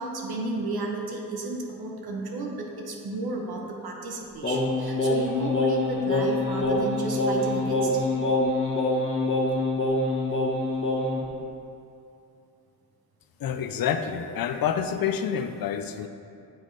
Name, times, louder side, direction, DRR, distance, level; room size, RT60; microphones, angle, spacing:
voice 1, 0.0-8.1, right 2 dB, 60° right, 1 dB, 1.0 m, -33 dB
Singing, 4.4-11.3, left 2 dB, 30° left, 1.2 m, -25 dB
voice 2, 13.4-16.1, left 8 dB, 55° left, 8 dB, 0.6 m, -28 dB
9.1 x 3.1 x 4.0 m, 2.6 s
supercardioid pair, 40°, 41 cm